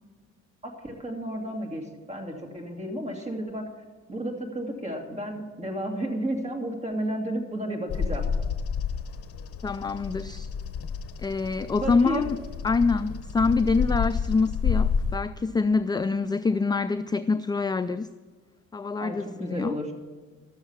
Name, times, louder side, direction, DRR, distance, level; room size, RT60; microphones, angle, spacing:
voice 1, 0.6-3.7 4.1-8.3 11.8-12.3 19.0-19.9, right 1 dB, 20° right, 1 dB, 2.5 m, -32 dB
Bird vocalization bird call bird song, 7.9-15.2, left 6 dB, 50° left, 0.8 m, -30 dB
voice 2, 9.6-10.5 11.2-12.4 12.6-18.1 18.7-19.8, left 4 dB, 15° left, 12 dB, 0.3 m, -25 dB
12.5 x 7.3 x 7.2 m, 1.4 s
cardioid pair, 90°, 30 cm